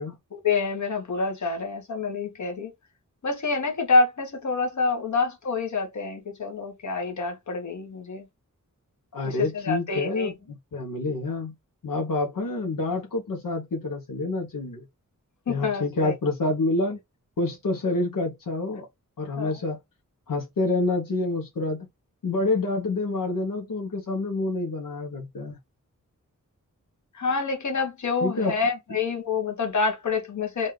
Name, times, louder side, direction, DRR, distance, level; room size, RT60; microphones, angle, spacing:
voice 1, 0.3-2.7 3.2-8.3 9.2-10.3 15.5-16.1 19.4-19.6 27.1-30.7, left 4 dB, 60° left, 1.3 m, -27 dB
voice 2, 9.1-10.3 10.7-11.5 11.8-14.8 15.5-17.0 17.4-18.9 19.2-19.8 20.3-21.9 22.2-25.6 28.2-28.5, left 2 dB, 80° left, 1.1 m, -27 dB
4.0 x 2.5 x 3.3 m
wide cardioid pair, 120°, 32 cm